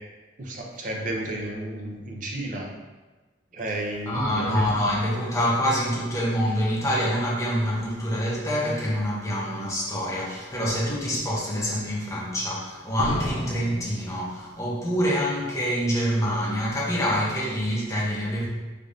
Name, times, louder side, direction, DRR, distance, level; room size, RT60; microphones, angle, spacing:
voice 1, 0.4-2.7 3.5-4.6, right 1 dB, 45° right, -1 dB, 0.6 m, -32 dB
voice 2, 4.1-18.5, equal, 15° left, -5 dB, 0.7 m, -26 dB
Slam, 9.8-9.9 10.5-10.9 13.0-14.9 15.1-15.2, equal, 85° left, 0.6 m, -35 dB
3.7 x 3.4 x 2.6 m, 1.2 s
head